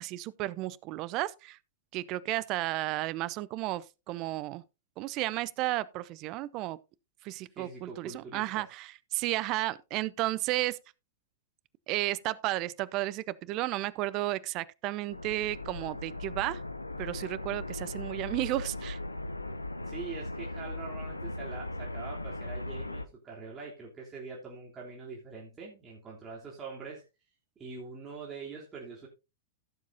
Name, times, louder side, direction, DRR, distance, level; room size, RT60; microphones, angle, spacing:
voice 1, 0.0-1.6 1.9-4.6 5.0-6.8 7.2-10.8 11.9-16.6 17.0-19.0, right 17 dB, 40° right, 0.6 m, -33 dB
voice 2, 7.5-8.6 19.8-27.0 27.6-29.1, right 4 dB, 20° right, 3.3 m, -44 dB
sound 1, 15.1-23.1, left 2 dB, 90° left, 0.6 m, -38 dB
16.0 x 7.4 x 2.7 m
figure-of-eight pair, 95°, 0 cm